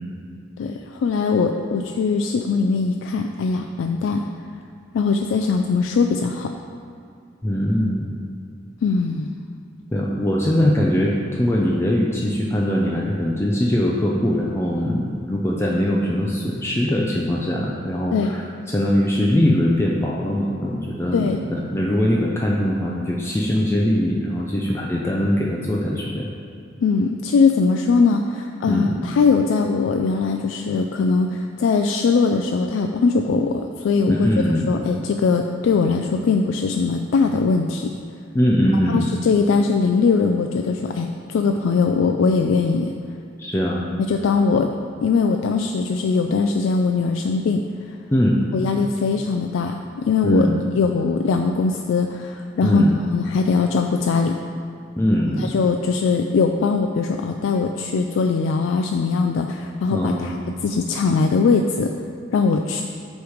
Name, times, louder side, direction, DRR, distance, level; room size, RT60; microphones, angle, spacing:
voice 1, 0.6-4.2 4.9-6.5 8.8-9.3 18.1-18.3 21.1-21.4 26.8-34.3 34.7-37.9 38.9-42.9 44.1-44.7 45.0-47.6 48.5-50.5 50.7-52.8 53.1-54.4 55.4-60.3 60.6-61.9 62.3-62.8, left 4 dB, 90° left, 4 dB, 0.3 m, -21 dB
voice 2, 7.4-8.2 9.9-18.4 18.7-26.3 28.7-29.0 34.1-34.8 38.3-39.0 43.4-43.8 48.1-48.4 50.2-50.5 52.6-53.0 55.0-55.6 59.9-60.4, equal, 15° left, -3 dB, 0.4 m, -21 dB
8.2 x 3.2 x 4.9 m, 2.4 s
head